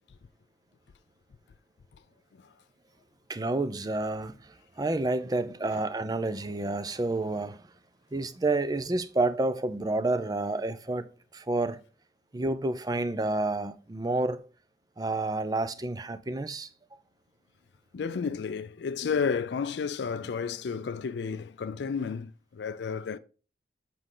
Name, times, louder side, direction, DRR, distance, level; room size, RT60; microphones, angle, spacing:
voice 1, 3.3-7.7 8.1-11.8 12.3-14.4 15.0-16.7, right 2 dB, 20° right, 0.4 m, -29 dB
voice 2, 17.9-23.2, left 6 dB, 65° left, 0.4 m, -32 dB
7.7 x 4.9 x 3.8 m
head